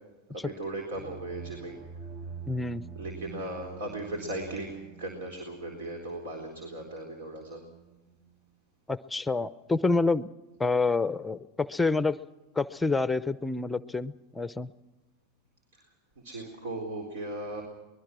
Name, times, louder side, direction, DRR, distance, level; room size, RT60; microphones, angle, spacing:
voice 1, 0.3-1.8 3.0-7.6 15.7-15.8 16.2-17.6, right 1 dB, 75° right, 4 dB, 4.0 m, -37 dB
sound 1, 0.9-8.6, right 6 dB, 50° right, 2.4 m, -46 dB
voice 2, 2.5-2.8 8.9-10.3 10.6-12.2 12.6-14.7, left 3 dB, 10° left, 15 dB, 0.6 m, -28 dB
24.0 x 21.0 x 6.2 m, 1.1 s
hypercardioid pair, 100°, 0 cm